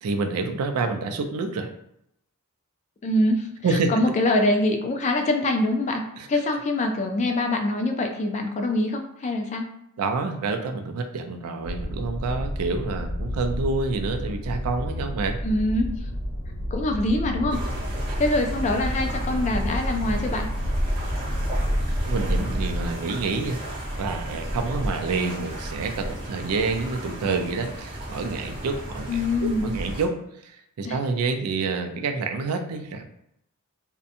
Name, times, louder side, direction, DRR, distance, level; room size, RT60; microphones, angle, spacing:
voice 1, 0.0-1.7 3.6-3.9 6.2-6.3 10.0-15.4 18.1-18.2 22.1-23.6 24.0-33.0, right 4 dB, 85° right, 7 dB, 0.4 m, -28 dB
voice 2, 3.0-3.5 3.9-9.7 15.4-15.9 16.7-17.6 18.2-20.5 29.1-29.7 30.9-31.0, left 1 dB, 30° left, 4 dB, 0.3 m, -24 dB
sound 1, 11.6-22.9, equal, 75° left, 0.9 m, -31 dB
sound 2, 17.5-30.1, equal, 20° right, 0.7 m, -31 dB
2.7 x 2.1 x 2.5 m, 0.78 s
head